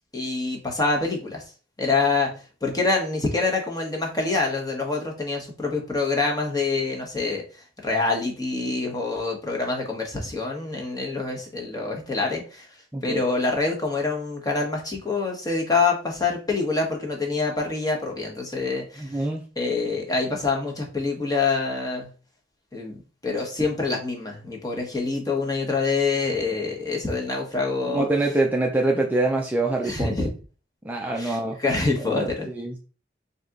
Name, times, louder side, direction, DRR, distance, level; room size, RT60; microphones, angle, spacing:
voice 1, 0.1-1.4 1.8-2.3 2.6-7.4 7.8-12.6 13.0-19.2 19.6-22.1 22.7-23.0 23.2-28.1 29.8-30.3 31.2-32.5, left 3 dB, 20° left, 0 dB, 1.1 m, -26 dB
voice 2, 12.9-13.2 19.0-19.4 27.9-30.3 30.8-31.6 32.0-32.3 32.6-32.8, right 2 dB, 10° right, 0 dB, 0.5 m, -25 dB
4.0 x 2.8 x 3.6 m, 0.36 s
head